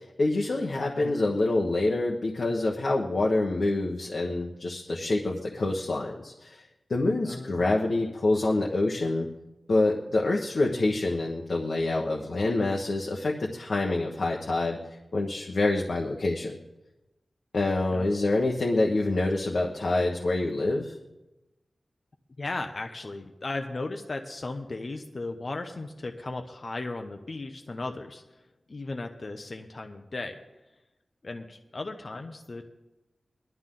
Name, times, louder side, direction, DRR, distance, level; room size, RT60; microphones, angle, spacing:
voice 1, 0.2-6.6 6.9-9.3 9.7-14.8 15.1-16.5 17.5-20.9, left 2 dB, 65° left, -1 dB, 1.3 m, -26 dB
voice 2, 7.2-7.7 17.9-18.1 22.4-28.2 28.7-30.4 31.2-32.7, left 2 dB, 45° left, 4 dB, 0.9 m, -36 dB
20.0 x 12.0 x 3.9 m, 1.0 s
wide cardioid pair, 95°, 0 cm